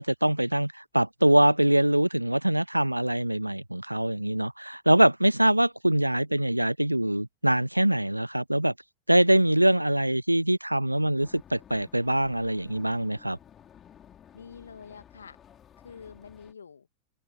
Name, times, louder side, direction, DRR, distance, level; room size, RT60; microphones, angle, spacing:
voice 1, 0.0-8.7 9.1-13.4, right 1 dB, 85° right, 0.3 m, -23 dB
sound 1, 11.2-16.5, left 9 dB, 25° left, 5.6 m, -54 dB
voice 2, 14.3-15.4 15.8-16.9, left 6 dB, 70° left, 2.4 m, -46 dB
figure-of-eight pair, 90°, 0 cm